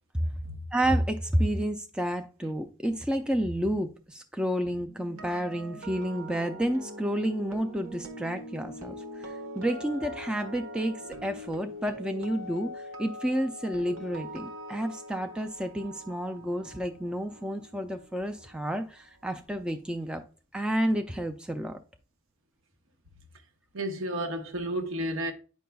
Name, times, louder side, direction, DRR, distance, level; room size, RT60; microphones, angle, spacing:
voice 1, 0.7-20.2 20.5-21.8, equal, 5° right, 0.3 m, -30 dB
sound 1, 5.0-19.0 19.3-19.6, equal, 90° right, 1.3 m, -43 dB
voice 2, 23.7-25.3, right 1 dB, 70° right, 1.0 m, -31 dB
9.2 x 5.3 x 2.3 m
head